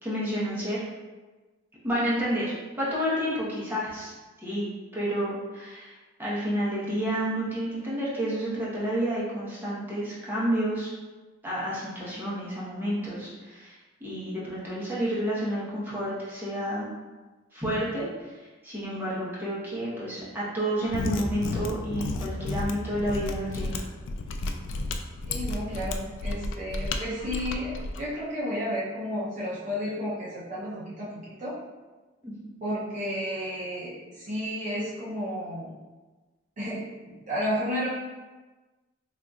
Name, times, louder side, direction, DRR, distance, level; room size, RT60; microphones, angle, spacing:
voice 1, 0.0-0.8 1.8-4.1 4.4-5.9 6.2-10.9 11.4-13.7 14.0-16.9 17.5-18.1 18.6-23.8 32.2-32.3, equal, 10° right, -9 dB, 1.0 m, -30 dB
Mechanisms, 20.8-28.0, left 3 dB, 70° left, 0.3 m, -32 dB
voice 2, 25.3-31.6 32.6-35.7 36.6-37.9, equal, 40° right, -8 dB, 0.6 m, -32 dB
3.9 x 2.8 x 2.4 m, 1.2 s
head